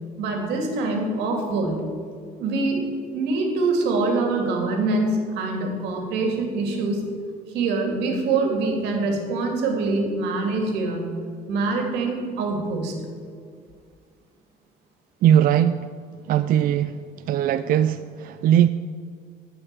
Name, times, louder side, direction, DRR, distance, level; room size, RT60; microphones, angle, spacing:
voice 1, 0.2-1.8 2.4-2.8 3.1-7.0 7.5-11.1 11.5-12.9, right 3 dB, 90° right, 2 dB, 2.4 m, -24 dB
voice 2, 15.2-15.9 16.2-18.7, right 10 dB, 60° right, 11 dB, 0.4 m, -20 dB
12.0 x 5.8 x 8.3 m, 2.2 s
cardioid pair, 110°, 17 cm